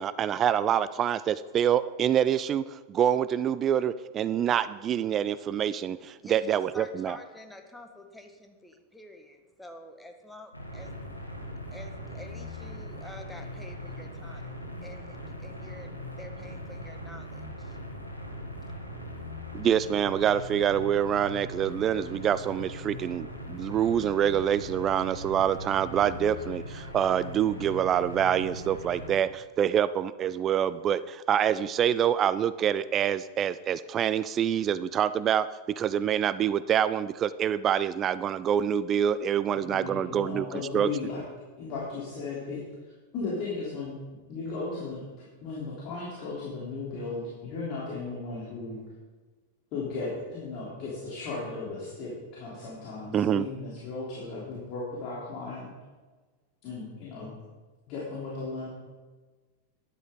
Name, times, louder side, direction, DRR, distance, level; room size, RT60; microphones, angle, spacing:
voice 1, 0.0-7.2 19.5-40.9 53.1-53.5, right 9 dB, 30° right, 16 dB, 0.3 m, -26 dB
voice 2, 6.2-10.9 11.7-17.8, left 1 dB, 5° left, 5 dB, 1.3 m, -48 dB
sound 1, 10.5-29.2, equal, 90° left, 1.7 m, -40 dB
voice 3, 39.7-41.2 41.6-42.6 43.1-43.9 44.3-48.8 49.7-55.7 56.6-57.3 57.9-58.7, left 3 dB, 40° left, -6 dB, 3.3 m, -36 dB
12.5 x 10.5 x 3.8 m, 1.3 s
figure-of-eight pair, 90°, 0 cm